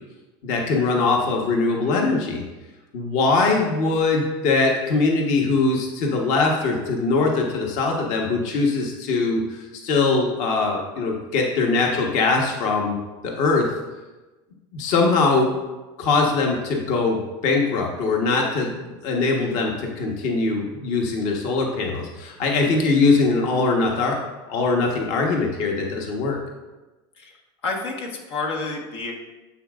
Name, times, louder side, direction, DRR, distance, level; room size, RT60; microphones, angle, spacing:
voice 1, 0.4-2.4 2.9-9.6 9.8-13.0 13.2-13.7 14.7-15.5 16.0-24.2 24.5-26.4, left 3 dB, 60° left, 1 dB, 1.2 m, -22 dB
voice 2, 27.6-29.1, left 3 dB, 90° left, 0 dB, 1.5 m, -29 dB
9.7 x 7.4 x 2.4 m, 1.1 s
supercardioid pair, 120°, 14 cm